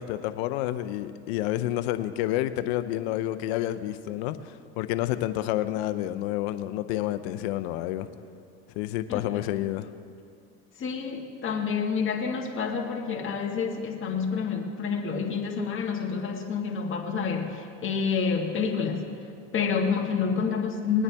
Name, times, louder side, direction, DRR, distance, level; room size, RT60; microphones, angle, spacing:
voice 1, 0.0-8.1 8.8-9.9, left 14 dB, 85° left, 11 dB, 0.7 m, -29 dB
voice 2, 9.1-9.4 10.8-19.0 19.5-21.0, left 5 dB, 40° left, 0 dB, 1.9 m, -28 dB
20.0 x 9.7 x 3.5 m, 2.3 s
supercardioid pair, 85°, 31 cm